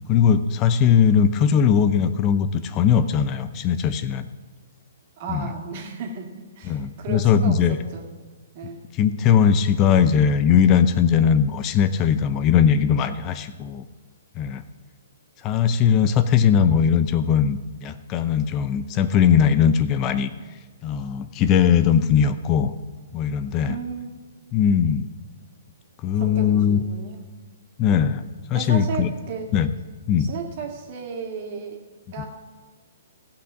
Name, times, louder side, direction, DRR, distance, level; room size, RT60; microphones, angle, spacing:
voice 1, 0.1-4.3 5.3-5.5 6.7-7.8 8.9-13.9 14.4-14.6 15.4-20.3 20.8-22.7 23.1-23.8 24.5-25.1 26.0-26.8 27.8-29.1 29.5-29.7 30.1-30.3 32.2-32.3, left 8 dB, 30° left, 11 dB, 0.6 m, -19 dB
voice 2, 5.2-6.3 6.6-8.0 8.5-8.8 23.7-24.1 26.1-27.3 28.5-29.6 30.2-31.8 32.1-32.3, right 5 dB, 45° right, 2 dB, 2.2 m, -34 dB
15.5 x 5.9 x 7.0 m, 1.4 s
hypercardioid pair, 130°, 0 cm